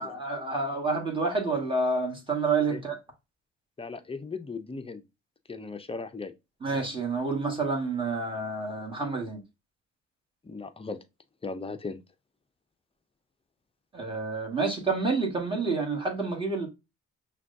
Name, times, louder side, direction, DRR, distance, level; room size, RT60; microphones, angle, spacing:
voice 1, 0.0-3.0 6.6-9.4 13.9-16.7, right 3 dB, 15° right, 1.6 m, -29 dB
voice 2, 3.8-5.0 5.5-6.3 10.4-11.0 11.4-12.0, left 4 dB, 20° left, 0.5 m, -37 dB
5.9 x 2.3 x 2.6 m
cardioid pair, 90°, 30 cm